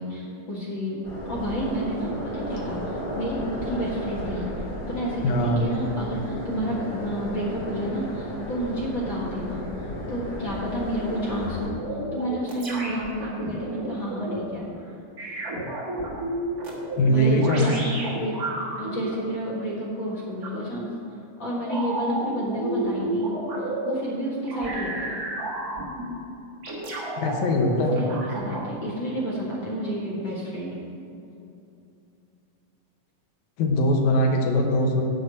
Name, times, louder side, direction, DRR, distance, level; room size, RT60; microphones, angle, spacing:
voice 1, 0.0-4.4 4.9-11.8 12.1-15.0 17.0-18.4 18.8-20.9 21.4-23.3 23.8-25.2 27.9-30.8, equal, 45° left, -5 dB, 1.8 m, -30 dB
sound 1, 1.0-11.7, left 1 dB, 20° left, 1.8 m, -34 dB
voice 2, 5.2-5.6 17.0-17.7 27.2-28.0 33.6-35.0, left 1 dB, 70° left, 1 dB, 2.4 m, -21 dB
sound 2, 11.4-14.4 15.2-19.2 20.4-20.6 21.7-23.9 24.4-26.1 26.6-27.4 27.8-28.7, right 2 dB, 40° right, 1.4 m, -31 dB
7.9 x 5.5 x 7.5 m, 2.8 s
omnidirectional pair, 3.7 m